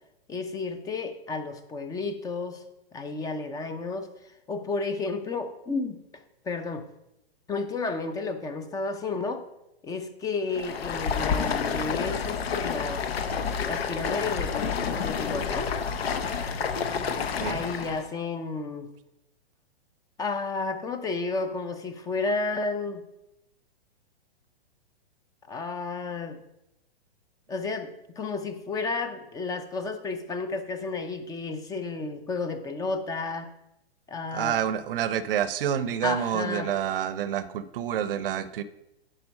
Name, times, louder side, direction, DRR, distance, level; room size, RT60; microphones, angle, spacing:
voice 1, 0.3-2.6 2.9-6.0 6.4-6.8 7.5-9.4 9.8-13.1 13.7-15.7 17.5-18.9 20.2-23.0 25.5-26.4 27.5-27.9 28.2-33.5 34.1-34.6 36.0-36.7, left 3 dB, 10° left, 9 dB, 0.5 m, -32 dB
Stream, 10.5-18.1, left 6 dB, 70° left, 1.0 m, -29 dB
voice 2, 34.3-38.6, right 9 dB, 60° right, 15 dB, 0.7 m, -28 dB
9.9 x 4.6 x 5.2 m, 0.86 s
hypercardioid pair, 120°, 32 cm